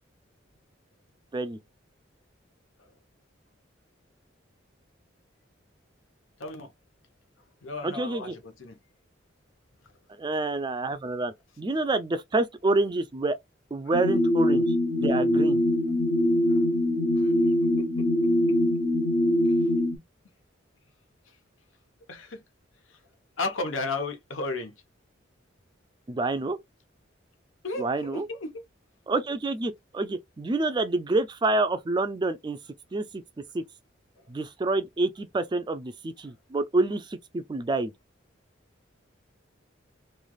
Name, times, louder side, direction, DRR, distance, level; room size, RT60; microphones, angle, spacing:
voice 1, 6.4-6.7 7.6-8.8 16.5-16.6 17.1-17.3 17.8-18.3 22.1-22.4 22.9-23.0 23.4-24.7 27.6-28.6 34.2-34.3, left 3 dB, 85° left, 0.9 m, -34 dB
voice 2, 7.8-8.3 10.2-13.4 13.7-15.6 26.1-26.6 27.8-28.3 29.1-32.6 32.9-33.2 33.5-33.6 34.3-37.9, right 2 dB, 25° right, 0.3 m, -28 dB
sound 1, 13.9-20.0, left 1 dB, 60° left, 0.6 m, -23 dB
3.2 x 2.4 x 2.3 m
head